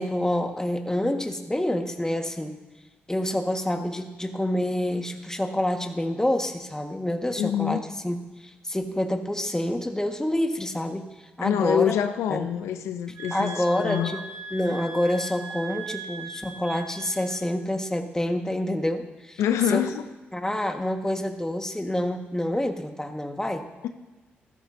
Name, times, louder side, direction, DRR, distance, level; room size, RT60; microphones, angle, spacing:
voice 1, 0.0-2.6 3.1-11.0 11.4-11.9 12.3-12.5 13.3-19.4 19.7-19.8 20.3-23.7, left 1 dB, 10° left, 4 dB, 1.7 m, -27 dB
voice 2, 7.4-7.8 11.4-14.2 19.4-20.0 23.8-23.9, left 10 dB, 85° left, 9 dB, 0.6 m, -26 dB
sound 1, 13.1-17.5, right 3 dB, 70° right, 2.9 m, -39 dB
15.0 x 13.0 x 2.8 m, 1.2 s
supercardioid pair, 45°, 5 cm